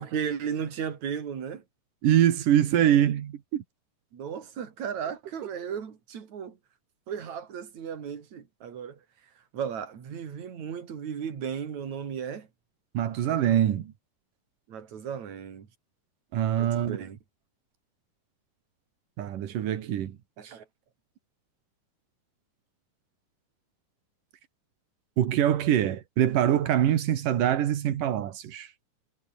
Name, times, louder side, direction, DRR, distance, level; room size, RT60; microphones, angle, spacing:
voice 1, 0.0-1.6 4.1-6.6 7.1-9.0 9.5-12.5 14.7-15.7 16.6-17.2 20.4-20.6, right 7 dB, 60° right, 4.1 m, -35 dB
voice 2, 2.0-3.6 12.9-13.9 16.3-17.0 19.2-20.2 25.2-28.7, right 10 dB, 85° right, 3.4 m, -24 dB
omnidirectional pair, 3.6 m